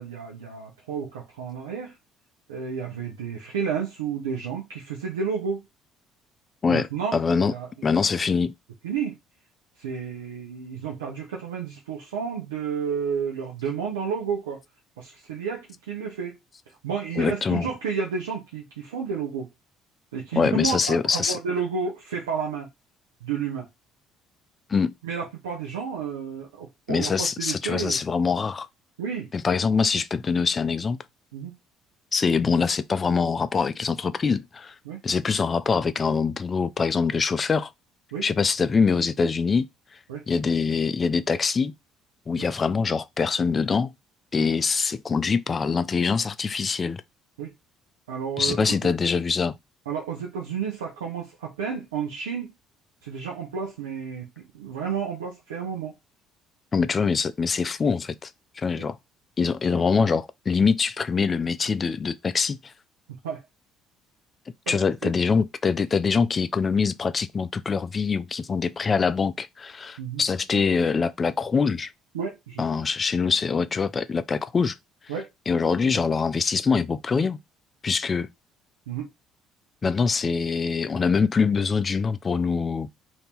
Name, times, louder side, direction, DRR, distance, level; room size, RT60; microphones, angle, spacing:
voice 1, 0.0-1.9 2.5-5.6 6.7-7.9 8.8-9.2 9.8-14.6 15.0-16.3 16.8-19.5 20.1-22.7 23.2-23.7 25.0-28.0 29.0-29.3 31.3-31.5 34.8-35.0 38.1-38.3 40.1-40.2 42.4-42.5 44.4-44.5 47.4-47.5 48.1-48.6 49.9-52.5 53.0-55.9 58.8-58.9 63.2-63.4 64.7-65.1 70.0-70.2 72.1-72.6 75.1-75.3 78.9-79.1, right 6 dB, 80° right, 0.6 m, -31 dB
voice 2, 6.6-7.5 7.8-8.5 17.2-17.7 20.4-21.4 24.7-24.9 26.9-28.7 29.3-31.0 32.1-34.7 35.0-37.7 38.2-39.7 40.3-41.7 42.3-43.9 44.3-47.0 48.4-49.5 56.7-58.3 58.6-59.0 59.4-62.7 64.7-71.9 72.6-74.8 75.5-77.4 77.8-78.3 79.8-83.0, left 5 dB, 35° left, 0.4 m, -24 dB
2.7 x 2.7 x 3.5 m
figure-of-eight pair, 50°, 0 cm